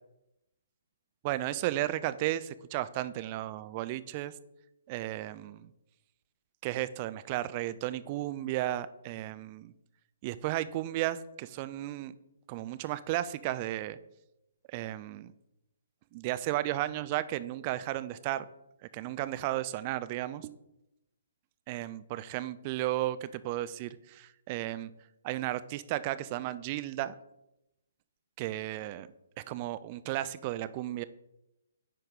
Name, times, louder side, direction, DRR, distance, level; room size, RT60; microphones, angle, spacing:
voice 1, 1.2-4.3 4.9-5.7 6.6-9.7 10.2-12.1 12.5-14.0 14.7-15.3 16.1-18.4 18.9-20.5 21.7-24.9 25.2-27.1 28.4-29.1 29.5-31.0, right 14 dB, 30° right, 14 dB, 0.3 m, -34 dB
9.6 x 4.6 x 3.7 m, 0.88 s
figure-of-eight pair, 130°, 0 cm